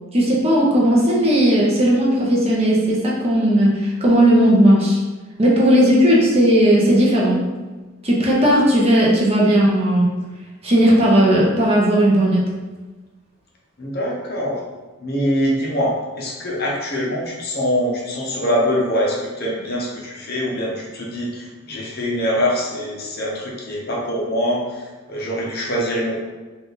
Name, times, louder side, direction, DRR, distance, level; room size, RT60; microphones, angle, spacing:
voice 1, 0.1-5.0 5.4-7.4 8.0-10.1 10.6-12.4, equal, 30° right, -4 dB, 0.8 m, -16 dB
voice 2, 13.8-14.6 15.0-26.2, equal, 50° left, -3 dB, 0.9 m, -23 dB
3.7 x 2.5 x 3.9 m, 1.3 s
head